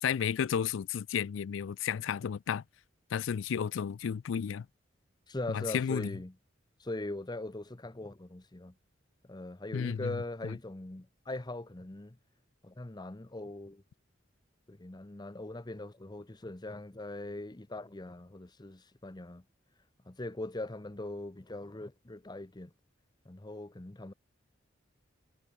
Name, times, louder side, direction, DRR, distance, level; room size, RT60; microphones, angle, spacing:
voice 1, 0.0-2.6 3.1-4.7 5.5-6.1 9.7-10.1 10.4-10.5, left 7 dB, 80° left, 0.4 m, -32 dB
voice 2, 5.3-6.3 6.8-8.7 9.3-12.2 12.6-13.8 14.7-19.4 20.1-22.7 23.3-24.1, left 2 dB, 20° left, 0.8 m, -41 dB
head